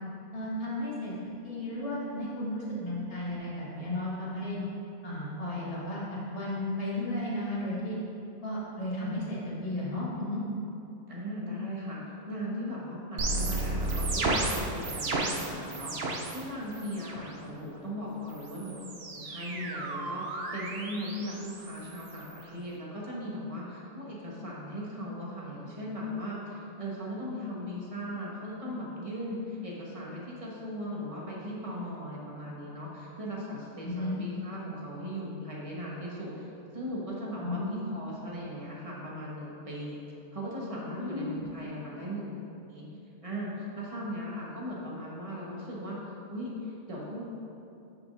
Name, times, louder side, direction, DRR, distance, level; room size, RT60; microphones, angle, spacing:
voice 1, 0.3-1.1 1.4-4.6 5.0-6.0 6.3-8.0 8.4-10.4 33.8-34.2 37.4-37.8 41.0-41.4, left 1 dB, 40° left, -8 dB, 2.0 m, -34 dB
voice 2, 11.1-12.0 12.3-18.8 19.1-36.5 36.7-40.0 40.3-42.3 42.7-42.8 43.2-47.2, equal, 25° right, -5 dB, 1.3 m, -38 dB
sound 1, 13.2-16.4 16.7-17.3 18.3-22.4, right 2 dB, 50° right, 0.8 m, -33 dB
9.8 x 6.2 x 2.6 m, 2.8 s
omnidirectional pair, 1.6 m